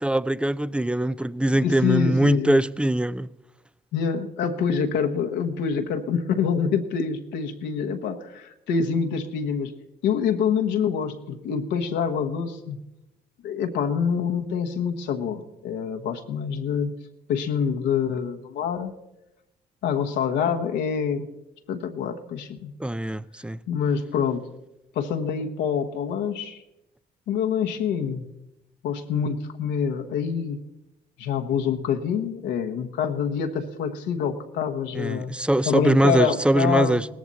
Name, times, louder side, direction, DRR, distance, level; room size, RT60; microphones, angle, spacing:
voice 1, 0.0-3.3 22.8-23.6 35.0-37.1, right 1 dB, 5° right, 0.5 m, -22 dB
voice 2, 1.6-2.6 3.9-9.7 10.0-12.8 13.4-16.9 17.3-18.9 19.8-21.3 21.7-22.7 23.7-24.5 24.9-26.6 27.3-28.2 28.8-30.6 31.2-35.3 35.7-37.0, left 7 dB, 80° left, 1.1 m, -26 dB
17.5 x 14.0 x 4.2 m
supercardioid pair, 60°, 19 cm